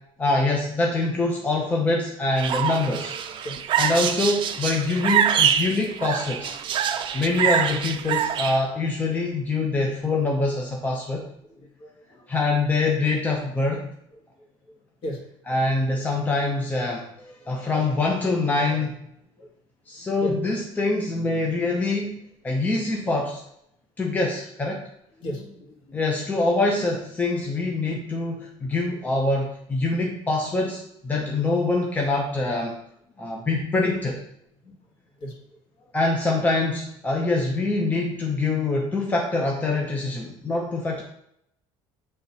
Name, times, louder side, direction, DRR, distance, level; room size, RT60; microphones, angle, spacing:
voice 1, 0.2-3.1 3.8-6.6 7.1-11.3 12.3-13.9 15.5-19.0 19.9-22.2 22.4-23.4 24.0-24.9 25.9-32.8 33.2-34.2 35.9-41.0, left 2 dB, 15° left, 0 dB, 0.8 m, -24 dB
sound 1, 2.4-8.6, right 8 dB, 45° right, 0.5 m, -25 dB
voice 2, 11.5-12.3 15.0-15.2 19.4-19.5 20.2-20.4 20.9-21.0 25.2-26.0 31.2-31.3 33.2-33.3 34.6-34.7 35.2-35.3, equal, 45° left, -1 dB, 2.0 m, -36 dB
8.4 x 3.5 x 4.1 m, 0.75 s
cardioid pair, 140°, 12 cm